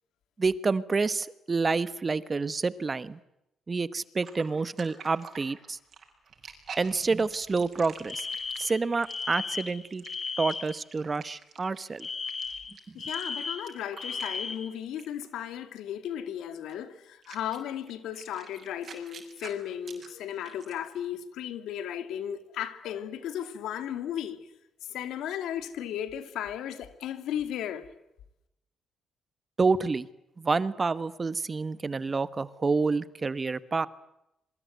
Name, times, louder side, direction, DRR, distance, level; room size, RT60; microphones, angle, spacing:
voice 1, 0.4-3.2 3.7-5.8 6.8-8.3 8.6-10.0 10.4-12.1 12.9-13.0 29.6-30.1 30.4-33.9, right 4 dB, 30° right, 1.2 m, -28 dB
sound 1, 4.2-14.7 15.0-15.3 16.7-16.8 17.2-20.9, right 6 dB, 50° right, 6.7 m, -47 dB
Alarm, 8.1-10.8 12.0-14.7, left 5 dB, 40° left, 3.5 m, -35 dB
voice 2, 12.9-24.4 24.8-27.9, left 10 dB, 85° left, 2.5 m, -35 dB
27.0 x 23.5 x 9.3 m
cardioid pair, 90°, 0 cm